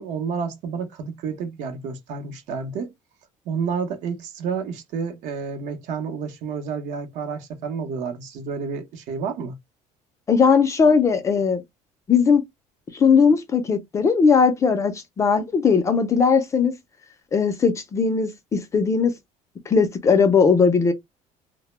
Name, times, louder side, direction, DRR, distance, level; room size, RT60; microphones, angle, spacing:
voice 1, 0.0-2.9 3.5-9.6, right 5 dB, 60° right, 0.7 m, -30 dB
voice 2, 10.3-11.6 12.1-12.4 12.9-16.7 17.3-19.1 19.7-20.9, left 5 dB, 20° left, 0.4 m, -18 dB
2.1 x 2.0 x 3.0 m
cardioid pair, 165°, 14 cm